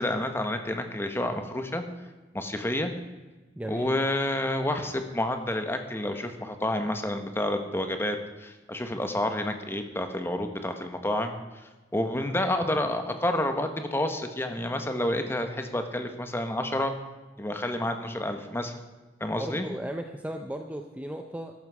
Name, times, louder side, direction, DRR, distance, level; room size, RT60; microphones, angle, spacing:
voice 1, 0.0-1.8 2.3-2.9 3.7-11.3 11.9-16.9 17.4-18.7 19.2-19.7, left 1 dB, 15° left, 6 dB, 1.2 m, -29 dB
voice 2, 3.6-3.9 19.4-21.5, right 1 dB, 10° right, 5 dB, 0.6 m, -35 dB
13.5 x 11.5 x 4.8 m, 1.2 s
head